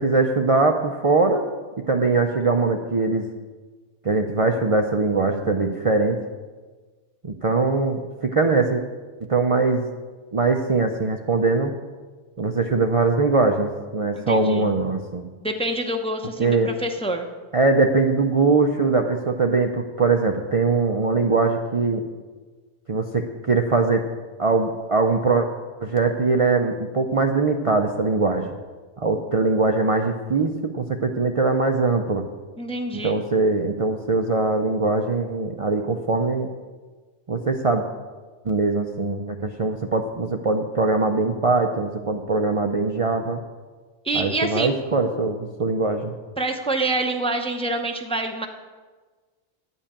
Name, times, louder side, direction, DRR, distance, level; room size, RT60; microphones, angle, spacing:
voice 1, 0.0-1.5 1.9-3.3 4.0-6.2 7.2-8.8 9.3-9.9 10.3-11.7 12.4-15.3 16.4-16.7 17.5-22.0 22.9-24.1 24.4-25.5 25.8-28.5 29.0-32.2 33.0-36.5 37.3-37.8 38.4-43.4 44.1-46.1, right 3 dB, 40° right, 3 dB, 0.5 m, -21 dB
voice 2, 14.1-14.7 15.4-17.3 32.6-33.2 44.0-44.7 46.4-48.5, right 2 dB, 5° left, 4 dB, 0.6 m, -26 dB
10.5 x 5.5 x 8.6 m, 1.4 s
omnidirectional pair, 1.2 m